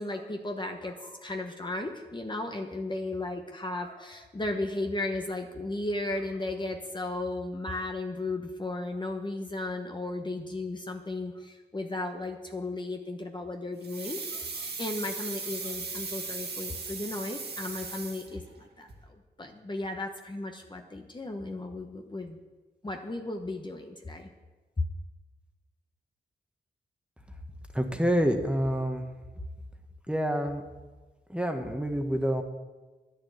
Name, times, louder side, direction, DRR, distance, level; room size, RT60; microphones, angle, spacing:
voice 1, 0.0-22.4 22.8-24.3, left 2 dB, 25° left, 3 dB, 1.1 m, -35 dB
sound 1, 13.8-18.6 18.9-19.0, right 4 dB, 65° right, 1.9 m, -38 dB
voice 2, 27.7-29.0 30.1-30.6 31.3-32.4, equal, 5° right, 4 dB, 1.4 m, -27 dB
10.5 x 6.7 x 9.1 m, 1.2 s
cardioid pair, 75°, 18 cm